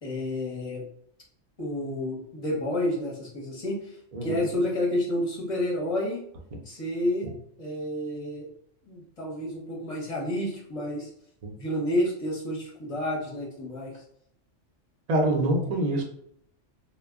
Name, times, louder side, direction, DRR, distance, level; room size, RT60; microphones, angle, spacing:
voice 1, 0.0-0.8 1.6-4.0 4.2-6.2 6.6-7.3 7.6-8.5 8.9-11.1 11.6-14.0, left 1 dB, 35° left, -3 dB, 0.7 m, -30 dB
voice 2, 15.1-16.0, right 1 dB, 45° right, 0 dB, 0.5 m, -25 dB
2.1 x 2.1 x 3.5 m, 0.69 s
omnidirectional pair, 1.3 m